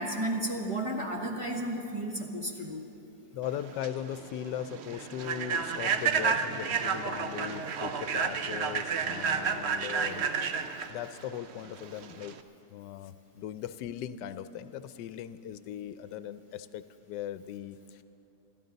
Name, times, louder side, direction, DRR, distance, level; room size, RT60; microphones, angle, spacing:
voice 1, 0.0-2.8, right 1 dB, 20° right, -1 dB, 1.3 m, -33 dB
voice 2, 3.3-10.3 10.9-12.4 12.7-18.0, left 10 dB, 85° left, 13 dB, 1.2 m, -39 dB
Human voice / Train, 3.5-12.4, right 6 dB, 60° right, 0.7 m, -31 dB
27.0 x 12.5 x 4.0 m, 2.7 s
omnidirectional pair, 1.8 m